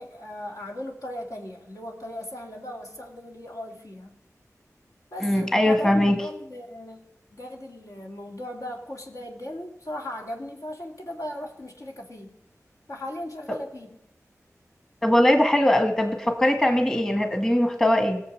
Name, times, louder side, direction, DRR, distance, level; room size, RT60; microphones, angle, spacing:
voice 1, 0.0-4.1 5.1-7.0 7.3-12.3 12.9-13.9, left 1 dB, 65° left, 0 dB, 2.6 m, -37 dB
voice 2, 5.2-6.2 15.0-18.2, left 1 dB, 10° left, 5 dB, 1.7 m, -21 dB
18.5 x 7.2 x 6.5 m, 0.81 s
wide cardioid pair, 60°, 6 cm